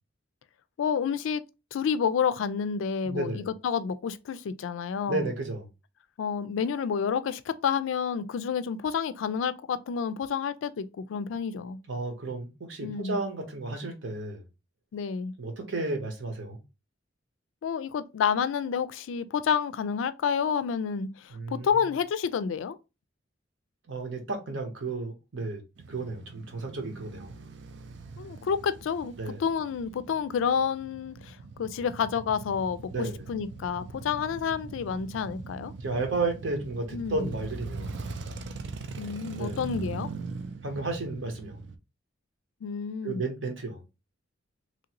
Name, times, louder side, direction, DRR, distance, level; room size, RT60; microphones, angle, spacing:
voice 1, 0.8-1.4 1.7-5.3 6.2-11.8 12.8-13.2 14.9-15.3 17.6-22.8 28.2-35.7 36.9-37.3 39.0-40.1 42.6-43.2, left 6 dB, 85° left, 0.3 m, -29 dB
voice 2, 3.0-3.5 5.1-5.7 11.9-14.5 15.4-16.6 21.3-21.9 23.9-25.6 25.9-27.3 29.2-29.4 32.9-33.3 35.8-37.9 39.4-39.6 40.6-41.6 43.0-43.8, right 3 dB, 80° right, 1.0 m, -33 dB
Male speech man speaking / Motorcycle / Idling, 25.8-41.8, right 3 dB, 65° right, 0.4 m, -41 dB
3.0 x 2.5 x 2.9 m
head